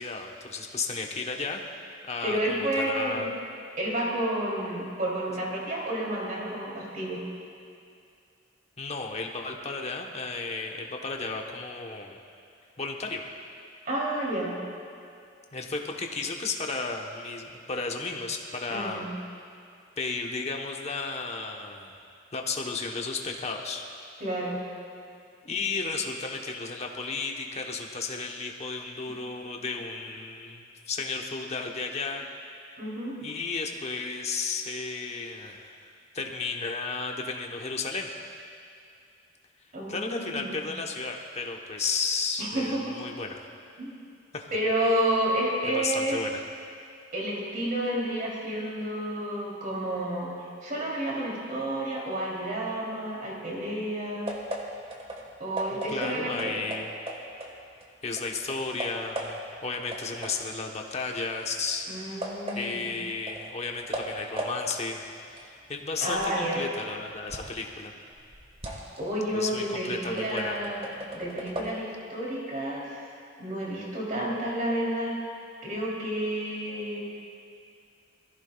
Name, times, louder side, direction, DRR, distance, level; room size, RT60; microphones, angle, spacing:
voice 1, 0.0-1.6 2.1-3.3 8.8-12.2 12.8-13.2 15.5-19.1 20.0-21.9 22.3-23.9 25.4-32.2 33.2-35.8 36.1-38.1 39.9-43.4 44.3-44.5 44.9-45.0 45.6-46.4 55.7-56.9 58.0-65.0 65.3-67.9 69.3-70.6, left 4 dB, 35° left, 2 dB, 1.0 m, -33 dB
voice 2, 2.2-3.3 3.8-7.2 13.8-14.5 18.7-19.1 24.2-24.6 29.0-29.1 32.8-33.2 39.7-40.6 42.4-42.9 43.8-43.9 44.5-46.2 47.1-50.3 50.6-54.4 55.4-56.6 61.9-62.8 66.0-66.7 68.9-70.8 71.1-73.1 73.4-75.2 75.6-77.0, right 1 dB, 50° right, -4 dB, 3.2 m, -30 dB
sound 1, 54.3-57.9 58.2-59.6 59.9-67.7 68.0-71.7, right 1 dB, 30° right, 1.5 m, -38 dB
21.0 x 14.5 x 2.3 m, 2.4 s
head